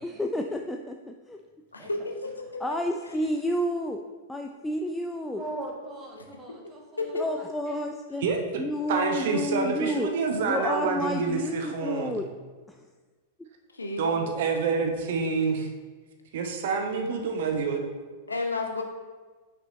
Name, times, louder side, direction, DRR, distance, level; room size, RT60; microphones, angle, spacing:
voice 1, 0.0-1.4 2.6-4.0 4.3-5.4 7.1-8.3 8.6-10.1 10.4-12.3 12.7-12.8, left 1 dB, 5° left, 3 dB, 0.3 m, -30 dB
voice 2, 1.7-2.6 3.1-3.3 6.2-6.3 7.0-7.2 13.7-14.2 18.3-18.8, left 3 dB, 80° left, 2 dB, 0.8 m, -32 dB
voice 3, 5.4-7.9, right 2 dB, 20° right, -1 dB, 1.3 m, -40 dB
voice 4, 8.2-8.6 8.9-12.2 14.0-15.7 16.3-17.8, right 4 dB, 55° right, 4 dB, 0.8 m, -27 dB
6.0 x 5.2 x 3.1 m, 1.4 s
figure-of-eight pair, 95°, 0 cm